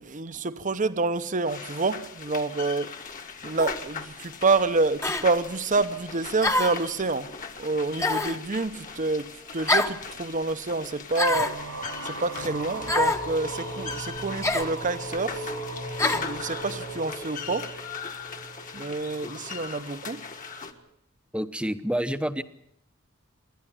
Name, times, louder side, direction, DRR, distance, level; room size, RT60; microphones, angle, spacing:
voice 1, 0.0-2.9 3.4-7.3 7.6-11.6 12.0-15.5 16.0-17.7 18.7-20.2, right 3 dB, 40° right, 0.9 m, -28 dB
sound 1, 1.5-20.7, left 5 dB, 40° left, 1.7 m, -40 dB
sound 2, 3.6-3.8 5.0-5.3 6.4-6.8 8.0-8.4 9.7-10.0 11.1-11.6 12.9-13.2 14.4-14.7 16.0-16.3, left 2 dB, 15° left, 1.1 m, -25 dB
sound 3, 11.3-20.8, right 2 dB, 90° right, 4.1 m, -38 dB
voice 2, 21.3-22.4, equal, 5° right, 0.9 m, -28 dB
27.5 x 11.0 x 8.9 m
head